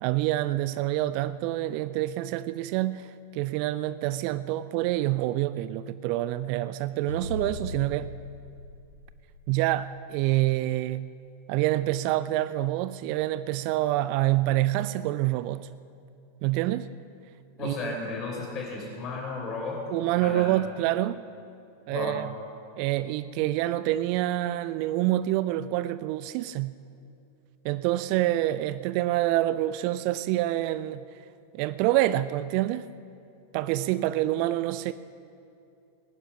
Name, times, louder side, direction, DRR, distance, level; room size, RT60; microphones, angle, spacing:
voice 1, 0.0-8.1 9.5-11.1 11.5-15.7 16.4-16.9 17.6-18.0 19.9-21.3 21.9-22.3 22.8-26.7 27.6-31.0 31.5-32.9 33.5-34.9, right 15 dB, 45° right, 15 dB, 0.4 m, -27 dB
sound 1, 7.1-9.8, equal, 85° left, 0.7 m, -38 dB
voice 2, 17.6-19.8 20.2-20.5 21.9-22.2, left 4 dB, 30° left, -1 dB, 4.5 m, -34 dB
19.0 x 10.0 x 5.7 m, 2.7 s
figure-of-eight pair, 90°, 0 cm